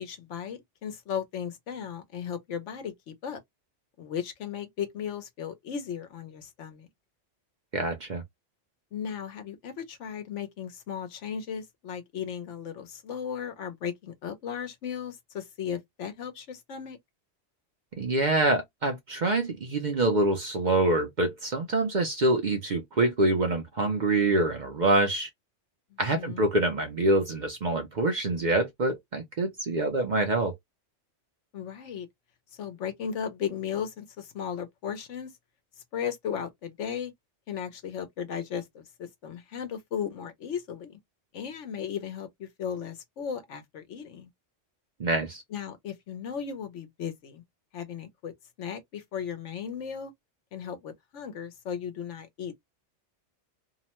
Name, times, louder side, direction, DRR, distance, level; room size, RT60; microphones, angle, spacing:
voice 1, 0.0-3.4 4.0-6.9 8.9-17.0 25.9-26.5 31.5-32.1 32.5-35.3 35.9-37.1 37.5-41.0 41.3-44.3 45.5-47.4 47.7-50.1 50.5-52.6, left 8 dB, 75° left, 1.1 m, -36 dB
voice 2, 7.7-8.2 18.0-25.3 26.0-30.6 45.0-45.4, right 2 dB, 50° right, 0.6 m, -26 dB
2.7 x 2.1 x 2.9 m
omnidirectional pair, 1.2 m